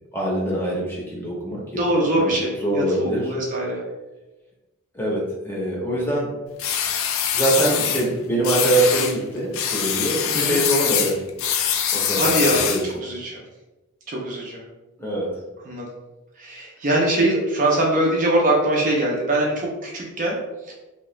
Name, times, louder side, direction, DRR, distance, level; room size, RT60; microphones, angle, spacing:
voice 1, 0.1-1.8 2.2-3.3 4.9-6.3 7.3-11.2 11.9-13.0 15.0-15.3, right 1 dB, 10° left, -4 dB, 0.7 m, -24 dB
voice 2, 1.8-3.8 10.3-10.6 12.2-13.4 14.1-14.6 15.7-15.9 16.4-20.4 20.6-20.7, right 1 dB, 35° right, -2 dB, 0.5 m, -22 dB
sound 1, 6.6-8.1 8.4-9.2 9.5-12.9, left 8 dB, 65° left, 0.3 m, -23 dB
2.7 x 2.3 x 3.1 m, 1.1 s
head